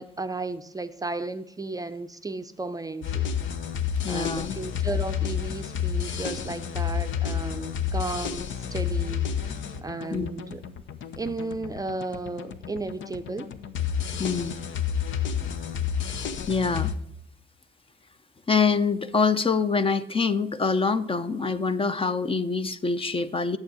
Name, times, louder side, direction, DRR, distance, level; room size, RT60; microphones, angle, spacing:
voice 1, 0.0-3.3 4.1-10.6 11.2-13.5, right 3 dB, 20° right, 9 dB, 0.5 m, -34 dB
sound 1, 3.0-16.9, left 8 dB, 75° left, 0.9 m, -30 dB
voice 2, 4.0-4.5 10.1-10.3 14.2-14.6 15.4-15.5 16.5-16.9 18.5-23.6, left 4 dB, 25° left, 11 dB, 0.6 m, -25 dB
8.9 x 7.3 x 6.2 m, 0.75 s
cardioid pair, 90°, 20 cm